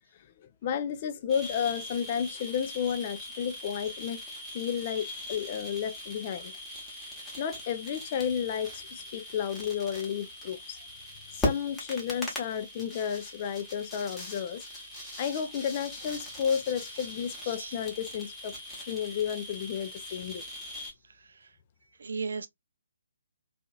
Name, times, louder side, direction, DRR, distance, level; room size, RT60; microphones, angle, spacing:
voice 1, 0.6-4.2 4.5-6.5 7.4-10.8 11.3-14.6 15.2-20.4, left 8 dB, 30° left, 0.4 m, -32 dB
sound 1, 1.3-20.9, left 1 dB, 5° left, 0.9 m, -40 dB
voice 2, 22.0-22.5, right 5 dB, 55° right, 0.4 m, -36 dB
2.8 x 2.4 x 2.3 m
figure-of-eight pair, 140°, 0 cm